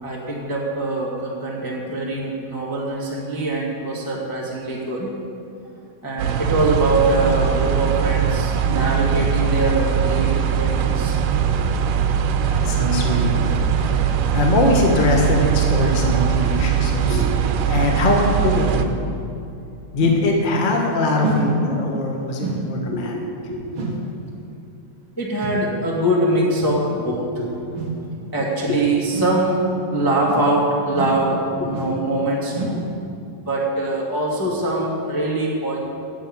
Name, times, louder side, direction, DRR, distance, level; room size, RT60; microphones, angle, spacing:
voice 1, 0.0-5.1 6.0-11.2 17.1-17.7 22.8-23.2 23.5-23.7 25.2-29.6 29.9-32.8 33.4-35.9, right 1 dB, 15° left, -4 dB, 0.8 m, -23 dB
sound 1, 6.2-18.9, right 8 dB, 90° right, 2.3 m, -21 dB
voice 2, 12.6-14.0 14.3-17.2 17.7-18.9 19.9-23.1, left 2 dB, 90° left, 0 dB, 0.4 m, -21 dB
sound 2, 20.0-20.3 21.2-21.5 22.4-22.7 23.7-24.0 25.4-25.6 26.6-26.8 27.7-28.0 29.1-29.4 30.2-30.6 30.9-31.2 31.7-32.0 32.5-32.8, right 3 dB, 45° right, 2.2 m, -27 dB
10.5 x 7.8 x 8.9 m, 2.6 s
omnidirectional pair, 3.7 m